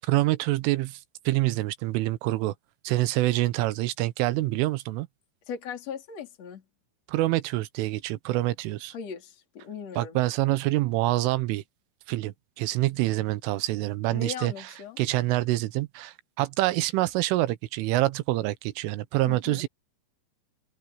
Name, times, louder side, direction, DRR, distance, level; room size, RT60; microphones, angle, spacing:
voice 1, 0.1-1.0 1.3-2.5 2.9-5.1 7.1-8.9 10.0-11.6 12.1-14.5 15.0-19.7, right 17 dB, 90° right, 3.5 m, -26 dB
voice 2, 5.5-6.6 8.9-10.2 14.1-15.0 19.3-19.6, left 6 dB, 35° left, 4.4 m, -38 dB
omnidirectional pair, 5.5 m